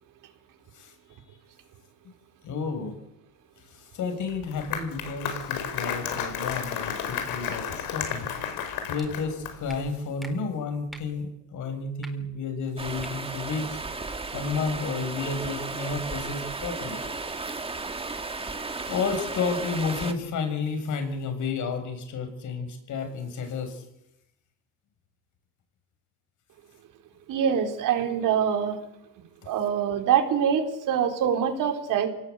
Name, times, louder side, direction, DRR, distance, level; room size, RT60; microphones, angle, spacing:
voice 1, 2.4-2.9 3.6-8.3 8.9-13.8 14.3-17.0 17.7-17.8 18.9-23.8, left 4 dB, 55° left, 7 dB, 6.6 m, -31 dB
Applause, 4.3-9.8, left 8 dB, 70° left, 5.1 m, -32 dB
sound 1, 9.0-9.1 9.7-9.8 10.2-10.3 10.9-11.1 12.0-12.1 13.0-13.1 13.5-13.7, equal, ahead, 4.3 m, -44 dB
Stream, 12.8-20.1, right 3 dB, 15° right, 2.3 m, -34 dB
voice 2, 27.3-28.8 29.5-32.1, right 8 dB, 60° right, 5 dB, 4.2 m, -24 dB
26.5 x 19.0 x 8.5 m, 0.88 s
cardioid pair, 105°, 36 cm